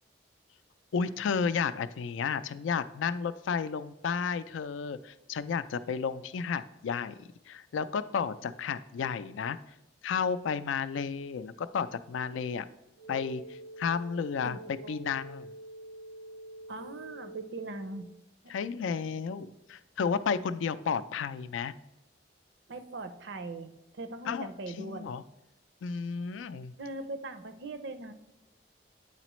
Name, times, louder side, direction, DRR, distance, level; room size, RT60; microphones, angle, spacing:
voice 1, 0.9-9.6 10.0-12.7 13.1-14.6 14.9-15.5 18.5-21.7 24.3-24.5 24.8-25.2 25.8-26.7, left 6 dB, 85° left, 14 dB, 0.4 m, -32 dB
sound 1, 13.0-17.9, right 1 dB, 85° right, 1.1 m, -46 dB
voice 2, 14.4-15.0 16.7-18.1 18.4-18.5 22.7-25.1 26.8-28.1, right 2 dB, 70° right, 9 dB, 0.6 m, -41 dB
8.9 x 4.1 x 3.0 m, 0.91 s
head